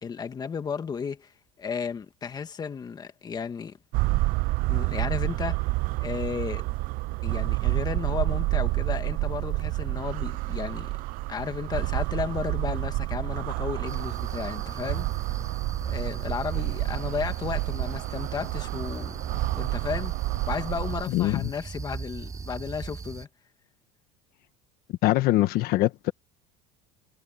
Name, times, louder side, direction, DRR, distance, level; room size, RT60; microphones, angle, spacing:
voice 1, 0.0-1.3 1.6-3.8 4.7-5.7 6.0-6.6 7.2-10.9 11.3-15.1 15.8-19.2 19.5-20.1 20.5-23.3, left 6 dB, 20° left, 1.7 m, -33 dB
sound 1, 3.9-21.0, right 21 dB, 50° right, 0.5 m, -29 dB
sound 2, 13.9-23.3, right 5 dB, 15° right, 7.1 m, -39 dB
voice 2, 21.1-21.5 25.0-26.1, left 16 dB, 55° left, 1.3 m, -23 dB
cardioid pair, 150°, 19 cm